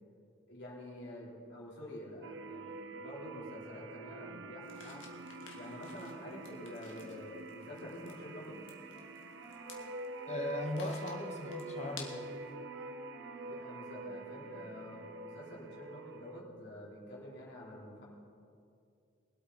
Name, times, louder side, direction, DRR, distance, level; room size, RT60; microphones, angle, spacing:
voice 1, 0.5-5.0 5.5-8.6 13.5-18.0, left 1 dB, 60° left, -6 dB, 4.1 m, -48 dB
sound 1, 2.2-16.4, right 2 dB, 70° right, 0.8 m, -46 dB
sound 2, 4.6-12.5, left 6 dB, 75° left, 1.9 m, -55 dB
Wind instrument woodwind instrument, 8.0-15.5, right 1 dB, 20° right, 1.5 m, -55 dB
voice 2, 10.3-12.3, left 1 dB, 35° left, 2 dB, 1.1 m, -38 dB
22.5 x 8.4 x 4.2 m, 2.5 s
head